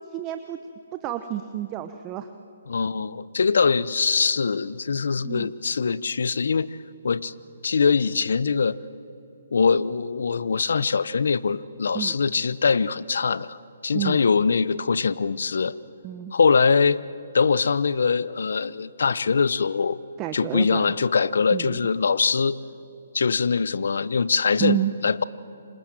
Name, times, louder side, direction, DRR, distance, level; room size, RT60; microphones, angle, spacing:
voice 1, 0.1-0.6 0.9-2.3 5.2-5.5 11.9-12.2 13.9-14.2 16.0-16.3 20.2-20.9 21.5-21.8 24.6-24.9, right 13 dB, 25° right, 8 dB, 1.0 m, -29 dB
voice 2, 2.7-6.7 7.0-7.3 7.6-8.8 9.5-13.6 13.8-15.7 16.3-17.0 17.3-20.0 20.3-22.6 23.1-25.2, left 5 dB, 75° left, 18 dB, 0.9 m, -22 dB
28.0 x 26.0 x 7.7 m, 2.9 s
hypercardioid pair, 150°, 0 cm